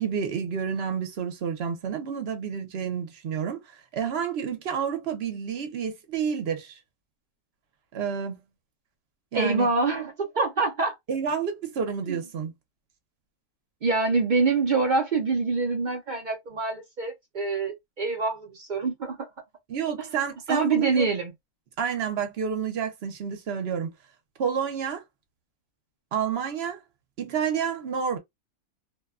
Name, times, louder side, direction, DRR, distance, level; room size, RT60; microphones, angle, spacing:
voice 1, 0.0-3.6 3.9-6.8 7.9-8.4 9.3-9.7 11.1-12.5 19.7-21.1 21.8-23.9 24.4-25.0 26.1-26.8 27.2-28.2, right 7 dB, 50° right, 0.9 m, -29 dB
voice 2, 9.3-10.9 12.1-12.2 13.8-19.3 20.0-20.1 20.5-21.3, right 4 dB, 70° right, 0.4 m, -25 dB
2.7 x 2.2 x 2.4 m
omnidirectional pair, 1.6 m